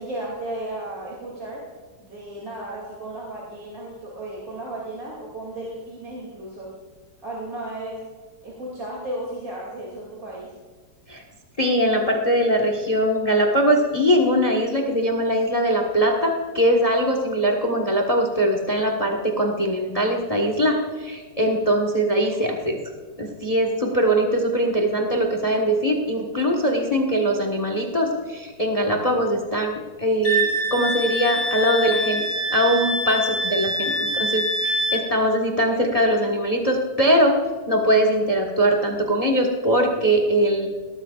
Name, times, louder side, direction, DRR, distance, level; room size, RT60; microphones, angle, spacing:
voice 1, 0.0-1.6 2.0-6.7 7.2-8.0 8.4-10.5 33.8-34.2, right 1 dB, 50° right, -4 dB, 3.2 m, -34 dB
voice 2, 11.6-22.8 23.2-32.2 32.5-37.3 37.7-40.7, equal, 20° left, 2 dB, 1.4 m, -21 dB
Wind instrument woodwind instrument, 30.2-35.0, right 1 dB, 65° left, 2.4 m, -25 dB
19.0 x 13.5 x 2.5 m, 1.4 s
omnidirectional pair, 2.0 m